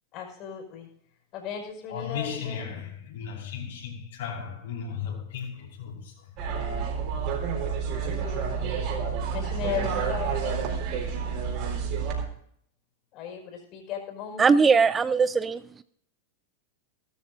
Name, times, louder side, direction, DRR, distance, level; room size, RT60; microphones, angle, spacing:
voice 1, 0.1-0.9 1.3-2.7 8.0-8.7 9.3-10.7 13.1-14.5, left 7 dB, 40° left, 5.4 m, -36 dB
voice 2, 1.9-6.3, left 7 dB, 60° left, 5.1 m, -36 dB
sound 1, 6.4-12.3, right 6 dB, 45° right, 4.3 m, -29 dB
voice 3, 14.4-15.8, right 5 dB, 15° right, 0.4 m, -21 dB
18.0 x 13.5 x 2.7 m
figure-of-eight pair, 90°, 0 cm